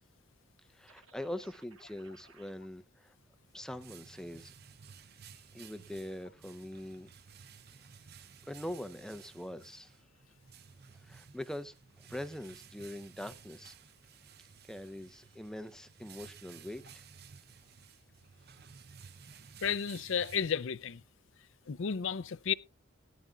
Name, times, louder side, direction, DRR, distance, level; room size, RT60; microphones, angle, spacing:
voice 1, 0.7-3.1 3.5-4.5 5.3-7.1 8.5-10.0 10.9-13.8 14.6-17.0, left 1 dB, 5° left, 0.5 m, -43 dB
sound 1, 0.9-2.5, right 5 dB, 70° right, 1.9 m, -61 dB
sound 2, 3.2-21.1, right 7 dB, 45° right, 0.6 m, -55 dB
voice 2, 19.6-21.0 21.7-22.5, left 7 dB, 60° left, 0.5 m, -32 dB
18.5 x 10.5 x 2.3 m
head